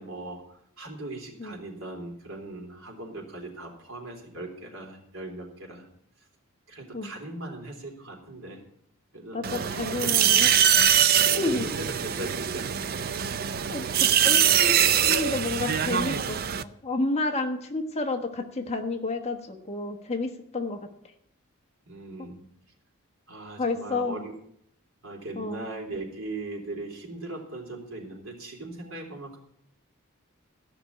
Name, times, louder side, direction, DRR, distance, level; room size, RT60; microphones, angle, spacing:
voice 1, 0.0-5.9 6.7-8.6 9.1-9.7 10.0-10.2 10.9-12.7 21.8-22.5 23.3-24.3 25.0-29.4, right 2 dB, 70° right, 1 dB, 3.5 m, -39 dB
voice 2, 9.3-10.5 10.8-10.9 11.3-11.6 13.7-20.9 23.6-24.2 25.3-25.7, left 3 dB, 30° left, 4 dB, 1.2 m, -31 dB
sound 1, 9.4-16.6, right 9 dB, 45° right, 0.5 m, -23 dB
14.5 x 6.0 x 8.5 m, 0.71 s
head